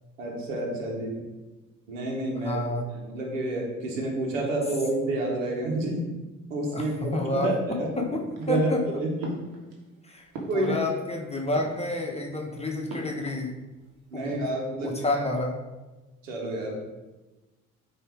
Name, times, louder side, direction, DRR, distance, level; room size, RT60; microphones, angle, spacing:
voice 1, 0.2-1.2 1.9-2.6 2.9-6.1 6.5-7.9 8.4-9.4 10.5-10.8 14.1-15.2 16.2-16.8, right 1 dB, 80° right, -1 dB, 1.5 m, -29 dB
voice 2, 2.4-2.9 6.7-7.5 7.9-8.8 10.0-10.3 10.5-13.5 14.1-14.4 14.8-15.6, left 2 dB, 15° left, 1 dB, 1.2 m, -29 dB
sound 1, 8.1-8.8 9.2-11.2 11.4-12.3 12.9-13.9 14.1-14.7, right 2 dB, 60° right, 1.7 m, -42 dB
9.0 x 3.2 x 4.8 m, 1.1 s
figure-of-eight pair, 50°, 38 cm